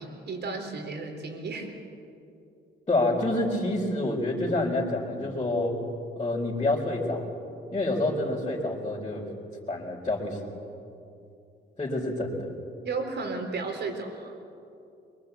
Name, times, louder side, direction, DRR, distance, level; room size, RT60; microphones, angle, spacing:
voice 1, 0.0-1.7 12.8-14.3, right 4 dB, 60° right, 4 dB, 4.2 m, -33 dB
voice 2, 2.9-5.8 6.2-7.3 7.7-9.3 9.7-10.4 11.8-12.5, left 2 dB, 25° left, -7 dB, 4.5 m, -27 dB
24.0 x 22.0 x 8.3 m, 2.6 s
cardioid pair, 90°, 20 cm